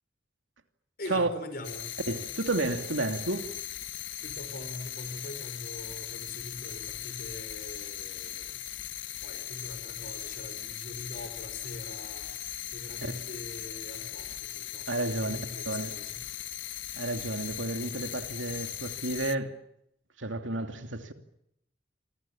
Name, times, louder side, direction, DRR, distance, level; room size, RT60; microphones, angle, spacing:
voice 1, 1.0-2.0 4.2-8.6 9.2-12.3 12.7-16.2, left 1 dB, 50° left, 5.2 m, -43 dB
sound 1, 1.6-19.4, left 13 dB, 80° left, 1.2 m, -39 dB
voice 2, 2.1-3.5 14.9-15.4 15.7-16.0 17.0-19.5 20.2-21.1, right 2 dB, 85° right, 2.8 m, -31 dB
28.5 x 26.5 x 7.3 m
head